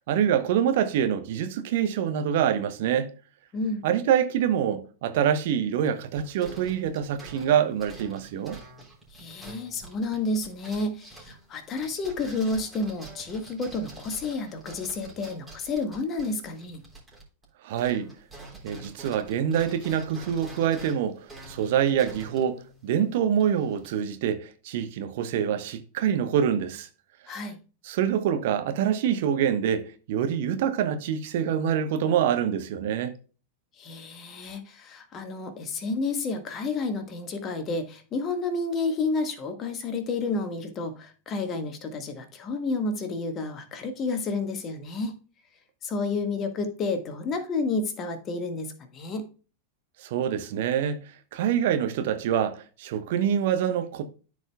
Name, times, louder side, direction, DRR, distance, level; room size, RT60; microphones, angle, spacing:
voice 1, 0.1-3.1 3.8-8.6 17.6-18.1 18.6-21.2 21.5-26.9 27.8-33.1 50.0-51.0 51.3-54.0, right 9 dB, 55° right, 1.0 m, -25 dB
voice 2, 3.5-3.8 9.1-16.8 27.3-27.6 33.8-45.2 45.8-49.3, left 3 dB, 30° left, 1.5 m, -30 dB
sound 1, 5.8-17.5 17.7-23.9, right 2 dB, 10° right, 3.4 m, -47 dB
14.0 x 4.8 x 2.2 m
figure-of-eight pair, 90°, 0 cm